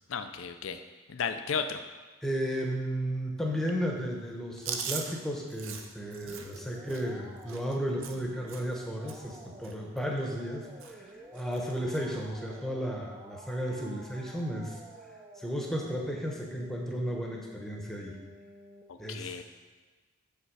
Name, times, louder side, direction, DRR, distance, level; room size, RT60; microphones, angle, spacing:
voice 1, 0.1-0.8 1.1-1.8 19.1-19.4, left 6 dB, 60° left, 8 dB, 0.4 m, -33 dB
voice 2, 2.2-14.8 15.4-18.1 19.0-19.4, equal, ahead, -1 dB, 0.9 m, -34 dB
Chewing mastication, 4.6-8.8 9.1-9.4 9.6-10.5 10.8-11.1 11.4-12.0 12.5-12.6 13.7-14.1, right 6 dB, 60° right, 0.7 m, -41 dB
sound 1, 6.0-18.8, right 1 dB, 20° right, 0.6 m, -51 dB
6.6 x 6.5 x 4.7 m, 1.3 s
head